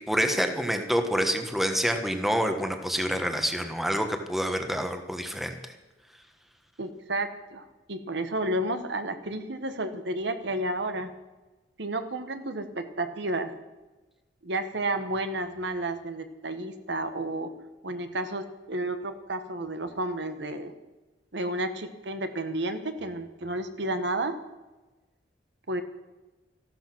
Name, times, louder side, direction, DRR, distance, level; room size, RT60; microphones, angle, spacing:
voice 1, 0.1-5.6, equal, ahead, 6 dB, 1.3 m, -27 dB
voice 2, 6.8-11.1 11.8-13.5 14.4-17.5 17.8-20.7 21.3-24.4 25.7-25.8, right 1 dB, 65° right, 9 dB, 1.3 m, -31 dB
14.5 x 12.0 x 6.1 m, 1.1 s
head